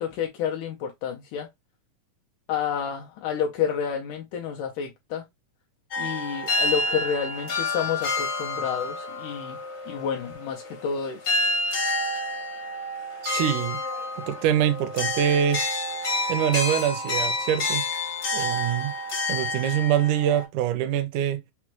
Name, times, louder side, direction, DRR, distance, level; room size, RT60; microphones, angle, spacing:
voice 1, 0.0-1.5 2.5-5.3 6.0-9.6 9.9-11.3, left 7 dB, 80° left, 1.9 m, -30 dB
sound 1, 5.9-10.9 11.2-20.4, left 2 dB, 60° left, 1.0 m, -29 dB
voice 2, 13.2-13.8 14.3-15.7 16.3-17.8 18.3-18.9 19.3-21.4, right 10 dB, 80° right, 1.8 m, -24 dB
5.9 x 2.2 x 2.9 m
omnidirectional pair, 4.0 m